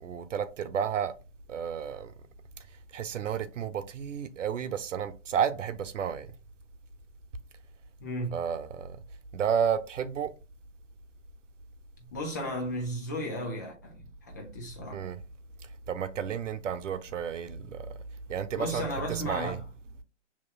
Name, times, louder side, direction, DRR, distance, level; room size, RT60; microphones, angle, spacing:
voice 1, 0.0-1.1 1.5-2.1 2.9-6.3 8.3-9.0 9.3-10.3 14.9-15.2 15.9-17.9 18.3-19.6, right 8 dB, 85° right, 0.7 m, -31 dB
voice 2, 8.0-8.4 12.1-15.0 18.5-19.6, equal, 15° left, 0.3 m, -35 dB
6.6 x 2.9 x 2.3 m
hypercardioid pair, 135°, 37 cm